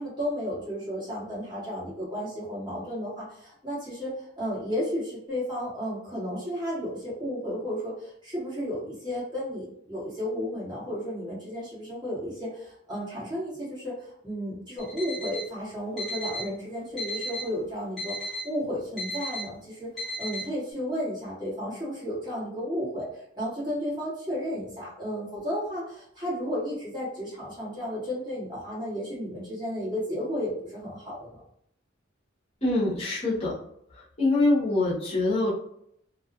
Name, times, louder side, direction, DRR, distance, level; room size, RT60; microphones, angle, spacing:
voice 1, 0.0-31.4, equal, 25° right, -9 dB, 1.5 m, -33 dB
Alarm, 14.8-15.5 16.0-16.5 17.0-17.5 18.0-18.5 19.0-19.5 20.0-20.5, equal, ahead, 1.3 m, -34 dB
voice 2, 32.6-33.6 33.9-35.5, left 2 dB, 30° left, -8 dB, 0.9 m, -24 dB
2.7 x 2.3 x 2.4 m, 0.71 s
head